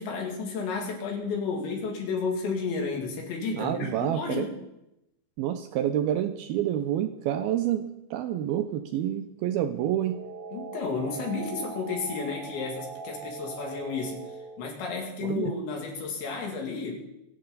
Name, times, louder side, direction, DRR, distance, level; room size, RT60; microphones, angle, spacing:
voice 1, 0.0-4.5 10.5-14.2 14.6-17.0, left 4 dB, 75° left, 0 dB, 4.7 m, -32 dB
voice 2, 3.5-4.5 5.4-10.2 15.2-15.5, right 11 dB, 90° right, 8 dB, 2.1 m, -28 dB
sound 1, 9.8-14.7, right 5 dB, 70° right, 2.6 m, -40 dB
25.0 x 11.0 x 4.0 m, 0.89 s
omnidirectional pair, 5.3 m